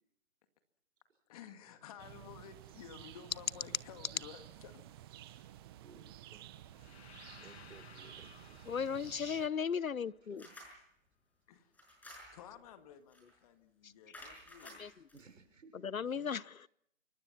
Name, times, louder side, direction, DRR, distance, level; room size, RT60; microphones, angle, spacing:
voice 1, 1.3-4.8 11.5-12.0 12.3-14.9 16.2-16.3, left 9 dB, 25° left, 2.0 m, -54 dB
sound 1, 2.0-9.5, right 13 dB, 20° right, 1.0 m, -53 dB
voice 2, 5.8-6.4 7.4-8.8 10.3-10.6 15.1-15.8, right 4 dB, 65° right, 6.1 m, -59 dB
sound 2, 6.7-10.7, left 7 dB, 50° left, 2.0 m, -59 dB
voice 3, 8.7-10.4 13.8-13.9 14.8-14.9 15.8-16.7, left 7 dB, 85° left, 0.9 m, -36 dB
sound 3, 10.4-10.8 11.7-12.5 13.1-13.3 14.1-15.2, left 1 dB, 5° left, 5.7 m, -53 dB
28.0 x 24.5 x 6.0 m
hypercardioid pair, 150°, 40 cm